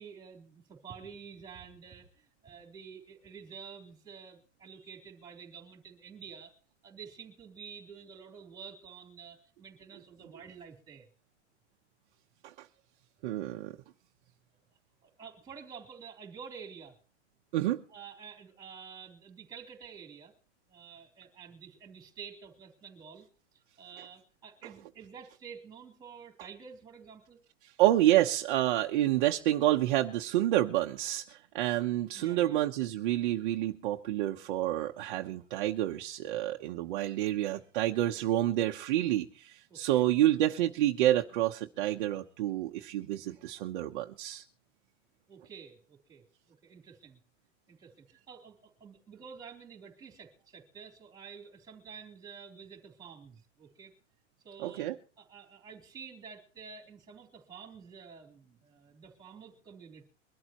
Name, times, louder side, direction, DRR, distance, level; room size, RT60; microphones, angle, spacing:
voice 1, 0.0-6.5 6.8-11.1 15.0-17.0 17.9-20.3 20.7-23.3 23.5-27.4 32.1-32.7 39.7-40.0 45.3-47.2 47.7-53.9 54.4-54.9 55.2-60.1, right 6 dB, 10° right, 3 dB, 3.5 m, -49 dB
voice 2, 13.2-13.7 17.5-17.8 27.8-44.4 54.6-54.9, right 14 dB, 45° right, 2 dB, 1.0 m, -28 dB
23.0 x 12.5 x 3.0 m, 0.38 s
supercardioid pair, 170°, 36 cm